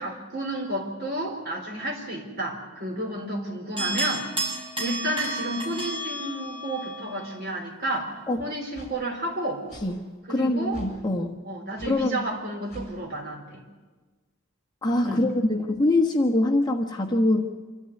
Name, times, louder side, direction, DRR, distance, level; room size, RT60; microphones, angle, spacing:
voice 1, 0.0-4.3 4.8-9.7 10.3-10.8 11.4-13.6 15.0-15.2, right 1 dB, 45° right, 1 dB, 4.2 m, -31 dB
sound 1, 3.8-7.3, right 1 dB, 25° right, 6.9 m, -32 dB
sound 2, 7.9-8.0 8.7-9.0 9.7-9.9 10.7-11.0 11.8-12.0 12.7-12.9, equal, 35° left, 7.0 m, -42 dB
voice 2, 10.3-11.4 11.9-12.2 14.8-17.4, left 1 dB, 20° left, 0 dB, 1.2 m, -23 dB
26.5 x 13.5 x 9.7 m, 1.3 s
head